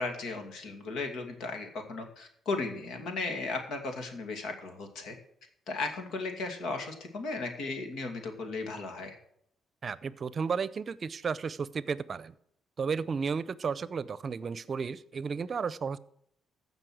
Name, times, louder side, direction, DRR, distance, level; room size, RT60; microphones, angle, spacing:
voice 1, 0.0-5.2 5.7-9.2, left 3 dB, 80° left, 5 dB, 2.3 m, -36 dB
voice 2, 9.8-12.3 12.8-16.0, right 5 dB, 45° right, 17 dB, 0.6 m, -33 dB
15.0 x 5.4 x 6.2 m, 0.71 s
cardioid pair, 90°, 0 cm